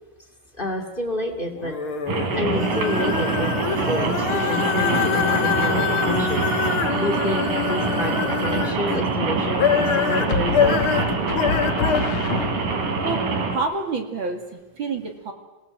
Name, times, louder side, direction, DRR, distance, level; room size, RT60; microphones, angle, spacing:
voice 1, 0.6-1.7 2.3-3.5 3.9-10.8, left 1 dB, 20° left, 5 dB, 2.0 m, -29 dB
sound 1, 1.5-9.0 9.5-12.0, left 7 dB, 55° left, 1.8 m, -25 dB
Rain, 2.1-13.6, right 4 dB, 90° right, 4.2 m, -25 dB
sound 2, 7.6-8.2 10.3-13.0, left 6 dB, 75° left, 2.5 m, -29 dB
voice 2, 13.0-15.3, right 4 dB, 40° right, 3 dB, 2.7 m, -28 dB
26.5 x 18.5 x 7.9 m, 1.1 s
omnidirectional pair, 3.6 m